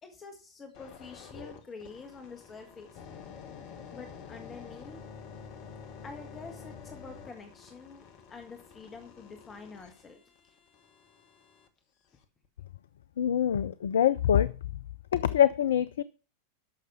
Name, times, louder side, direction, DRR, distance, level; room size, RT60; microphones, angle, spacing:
voice 1, 0.0-2.9 3.9-5.0 6.0-10.2, left 4 dB, 20° left, 5 dB, 1.6 m, -47 dB
sound 1, 0.7-11.7 12.2-12.5, left 6 dB, 45° left, 1.5 m, -49 dB
voice 2, 13.2-14.5 15.1-16.0, left 10 dB, 60° left, 17 dB, 0.4 m, -24 dB
11.5 x 6.6 x 5.5 m, 0.36 s
figure-of-eight pair, 90°, 0 cm